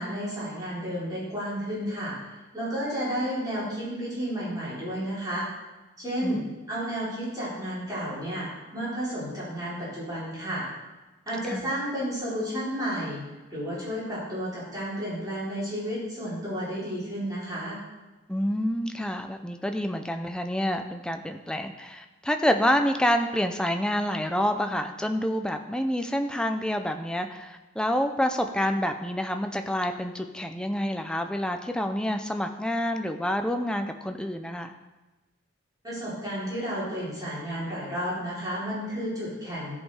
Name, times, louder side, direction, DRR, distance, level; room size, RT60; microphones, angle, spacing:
voice 1, 0.0-5.5 6.0-6.4 6.7-10.7 11.3-13.2 13.5-17.8 35.8-39.8, equal, 20° right, -9 dB, 4.0 m, -32 dB
voice 2, 18.3-34.7, equal, 5° left, 6 dB, 0.5 m, -28 dB
14.5 x 5.4 x 4.9 m, 1.1 s
head